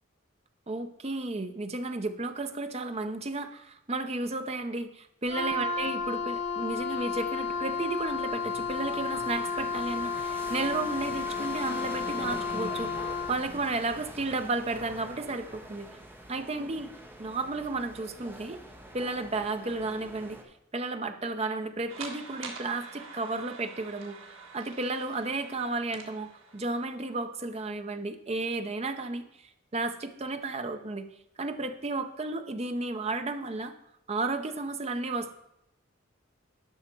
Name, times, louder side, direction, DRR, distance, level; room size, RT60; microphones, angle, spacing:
voice 1, 0.7-15.9 16.3-16.9 17.2-18.6 18.9-20.4 20.7-24.2 24.5-29.2 29.7-31.1 31.4-33.7 34.1-35.4, right 3 dB, 30° right, 8 dB, 0.7 m, -33 dB
Wind instrument woodwind instrument, 5.3-13.4, left 5 dB, 35° left, 1.1 m, -32 dB
sound 1, 6.3-20.4, right 1 dB, 10° right, 1.0 m, -45 dB
sound 2, 21.9-27.1, right 4 dB, 85° right, 1.5 m, -46 dB
11.5 x 5.6 x 4.5 m, 0.82 s
head